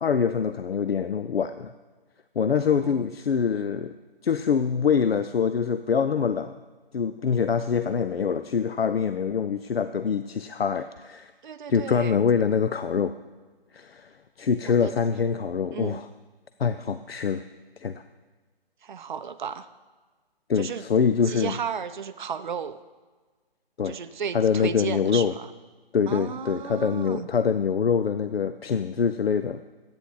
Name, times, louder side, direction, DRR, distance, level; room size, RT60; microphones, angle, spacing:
voice 1, 0.0-1.7 2.4-3.9 4.2-6.5 6.9-11.3 11.7-13.1 13.7-14.1 14.4-16.1 16.6-17.4 17.8-18.0 20.5-21.5 23.8-24.0 24.3-25.3 25.9-29.6, left 6 dB, 80° left, 11 dB, 0.5 m, -24 dB
voice 2, 11.4-12.2 14.7-14.9 15.7-16.0 18.8-19.7 20.6-20.9 21.2-22.8 23.8-25.5 26.1-27.3, right 7 dB, 55° right, 10 dB, 0.5 m, -34 dB
11.0 x 8.7 x 3.9 m, 1.3 s
figure-of-eight pair, 145°, 30 cm